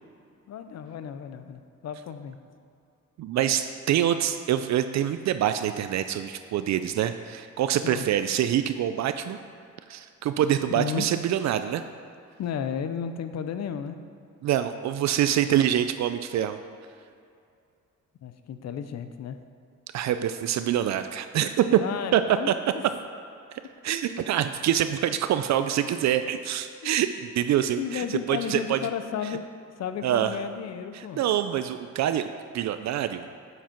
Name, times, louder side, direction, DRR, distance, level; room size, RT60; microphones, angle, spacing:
voice 1, 0.5-2.4 7.8-8.1 10.8-11.1 12.4-14.0 18.2-19.4 21.8-22.8 23.6-23.7 24.2-24.3 27.8-29.4 29.8-31.2, left 8 dB, 60° left, 10 dB, 0.7 m, -33 dB
voice 2, 3.2-9.4 9.9-11.8 14.4-16.6 19.9-21.8 22.1-22.2 22.5-22.6 23.8-27.1 27.3-28.8 30.0-30.4 30.9-32.3 32.5-33.3, right 11 dB, 65° right, 10 dB, 0.5 m, -25 dB
8.0 x 7.4 x 4.4 m, 2.4 s
cardioid pair, 90°, 30 cm